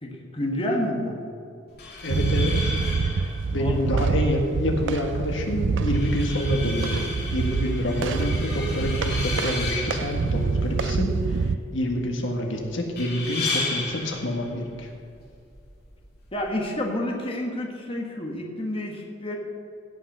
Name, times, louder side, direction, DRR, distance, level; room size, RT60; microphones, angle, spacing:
voice 1, 0.0-1.2 3.6-4.0 16.3-19.4, left 1 dB, 30° left, 0 dB, 1.6 m, -29 dB
sound 1, 1.7-16.7, left 3 dB, 55° left, 2.9 m, -35 dB
voice 2, 2.0-2.6 3.5-7.1 7.3-11.5 11.7-14.9, left 1 dB, 80° left, 1 dB, 1.7 m, -27 dB
sound 2, 2.1-11.5, right 4 dB, 70° right, 0.4 m, -26 dB
16.0 x 5.8 x 6.8 m, 2.5 s
head